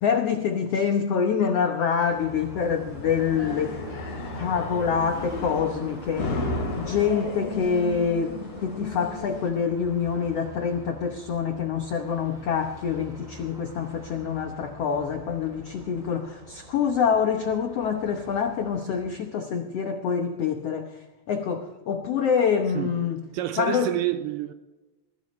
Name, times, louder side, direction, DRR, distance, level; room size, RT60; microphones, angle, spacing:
voice 1, 0.0-3.8 4.3-6.4 6.8-23.2 23.6-23.9, left 6 dB, 80° left, 1.3 m, -26 dB
Car passing by, 2.1-19.3, right 1 dB, 15° right, 2.5 m, -45 dB
sound 1, 2.6-9.5, left 2 dB, 55° left, 4.5 m, -34 dB
voice 2, 22.8-23.1 23.3-24.5, right 13 dB, 80° right, 2.1 m, -28 dB
21.0 x 16.0 x 3.2 m
omnidirectional pair, 4.4 m